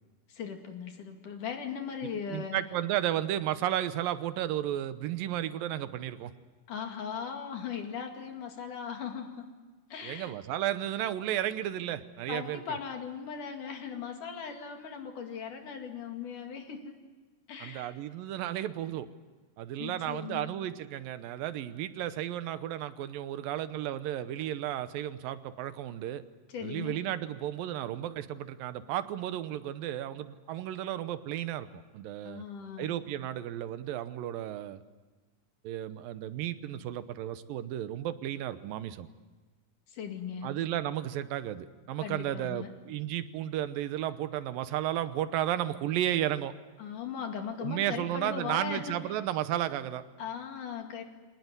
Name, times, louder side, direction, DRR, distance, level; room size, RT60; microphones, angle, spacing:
voice 1, 0.3-2.6 6.7-9.5 9.9-10.3 12.3-17.0 17.5-18.0 19.8-20.5 26.5-27.0 32.2-32.9 39.9-40.6 42.0-42.7 46.8-49.0 50.2-51.0, left 7 dB, 65° left, 4 dB, 3.8 m, -38 dB
voice 2, 2.3-6.3 10.0-12.6 17.6-19.1 19.6-26.2 26.6-32.4 32.8-34.8 35.6-39.1 40.4-46.5 47.6-50.0, right 12 dB, 85° right, 12 dB, 2.7 m, -33 dB
25.5 x 19.0 x 9.6 m, 1.3 s
omnidirectional pair, 4.0 m